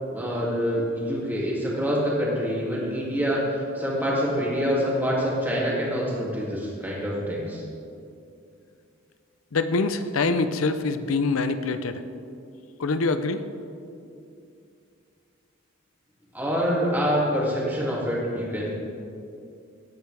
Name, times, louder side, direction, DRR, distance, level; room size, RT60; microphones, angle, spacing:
voice 1, 0.1-7.6 16.3-18.7, equal, 10° right, -6 dB, 2.5 m, -26 dB
voice 2, 9.5-12.0 12.8-13.4, left 3 dB, 85° left, 10 dB, 0.6 m, -25 dB
18.0 x 8.3 x 3.4 m, 2.5 s
head